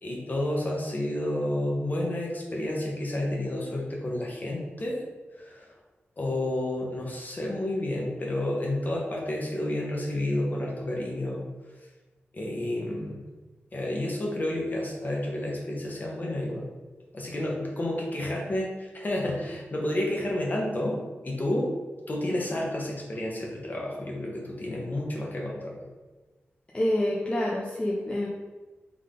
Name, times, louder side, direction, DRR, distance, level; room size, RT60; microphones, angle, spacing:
voice 1, 0.0-5.0 5.3-5.7 6.2-11.4 12.3-13.2 13.7-16.7 17.1-21.0 21.2-21.7 22.1-25.8, left 1 dB, 40° left, -2 dB, 1.1 m, -30 dB
voice 2, 26.7-28.3, left 1 dB, 25° left, -4 dB, 0.6 m, -27 dB
3.7 x 3.7 x 3.7 m, 1.3 s
wide cardioid pair, 95°, 4 cm